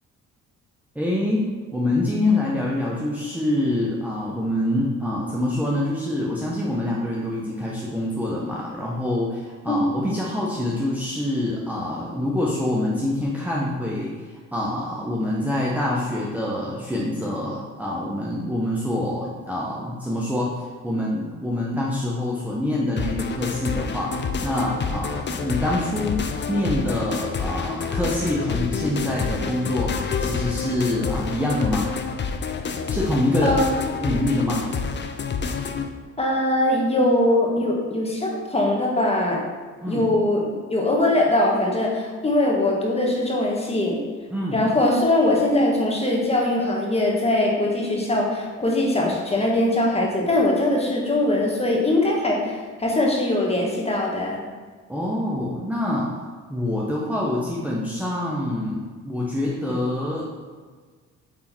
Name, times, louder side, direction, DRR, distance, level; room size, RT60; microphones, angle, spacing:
voice 1, 0.9-1.4 1.7-20.5 20.8-31.9 32.9-33.6 34.0-34.7 39.8-40.1 44.3-44.6 54.9-56.1 56.5-60.3, left 1 dB, 5° right, -5 dB, 1.1 m, -25 dB
voice 2, 9.7-10.1 33.4-33.7 36.2-39.4 39.9-44.0 44.5-54.4, left 1 dB, 20° left, -2 dB, 1.8 m, -21 dB
sound 1, 23.0-35.9, left 5 dB, 35° left, 0.7 m, -28 dB
8.2 x 3.7 x 4.5 m, 1.5 s
cardioid pair, 90°, 30 cm